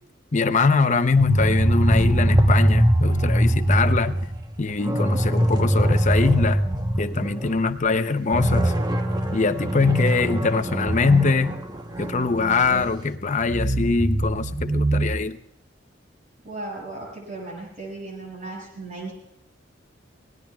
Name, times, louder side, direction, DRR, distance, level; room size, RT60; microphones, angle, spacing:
voice 1, 0.3-4.3 4.6-6.6 7.0-8.7 9.3-11.5 12.0-15.4, left 4 dB, 40° left, 10 dB, 0.7 m, -22 dB
sound 1, 1.2-7.6 7.9-8.0 8.3-12.9 13.4-15.1, right 1 dB, 20° right, 1.0 m, -22 dB
voice 2, 16.4-19.1, right 2 dB, 40° right, -2 dB, 6.3 m, -36 dB
26.0 x 18.5 x 2.4 m, 0.78 s
head